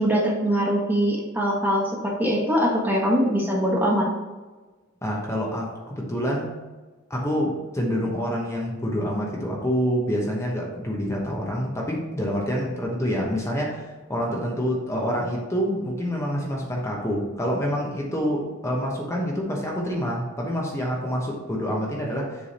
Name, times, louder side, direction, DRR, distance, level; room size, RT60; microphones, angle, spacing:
voice 1, 0.0-4.1, equal, 10° right, -2 dB, 1.3 m, -22 dB
voice 2, 5.0-6.5 7.1-22.5, equal, 15° left, -2 dB, 0.9 m, -27 dB
7.1 x 3.5 x 4.1 m, 1.3 s
head